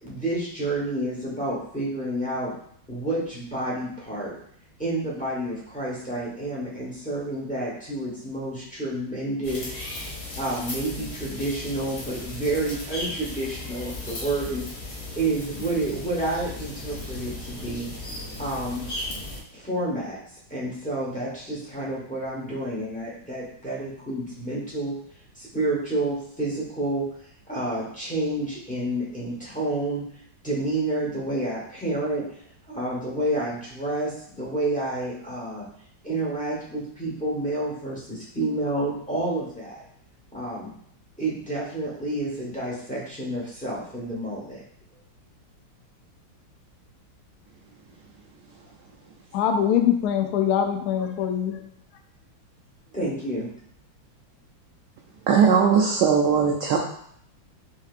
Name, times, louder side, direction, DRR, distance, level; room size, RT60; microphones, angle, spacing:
voice 1, 0.0-2.5 2.9-4.3 4.8-9.7 10.3-14.7 15.1-17.9 18.4-18.9 19.5-20.2 20.5-24.9 25.3-27.0 27.5-30.0 30.4-32.2 32.7-35.6 36.0-39.8 40.3-40.7 41.2-44.6 52.9-53.5, right 2 dB, 5° left, -6 dB, 0.7 m, -29 dB
sound 1, 9.4-19.4, left 2 dB, 55° left, 1.4 m, -36 dB
voice 2, 49.3-51.6, left 9 dB, 75° left, 5 dB, 0.9 m, -23 dB
voice 3, 55.3-56.8, right 6 dB, 75° right, 0 dB, 1.0 m, -19 dB
5.8 x 2.8 x 2.4 m, 0.65 s
omnidirectional pair, 2.1 m